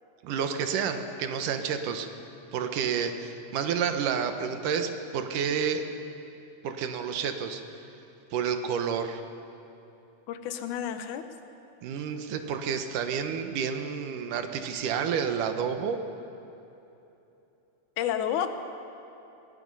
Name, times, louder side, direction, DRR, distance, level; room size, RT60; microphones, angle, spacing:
voice 1, 0.2-2.1 2.5-5.9 6.6-7.6 8.3-9.2 11.8-16.0, right 7 dB, 85° right, 7 dB, 2.7 m, -30 dB
voice 2, 10.3-11.2 18.0-18.5, left 10 dB, 75° left, 8 dB, 2.5 m, -30 dB
23.0 x 20.5 x 5.6 m, 2.9 s
omnidirectional pair, 3.6 m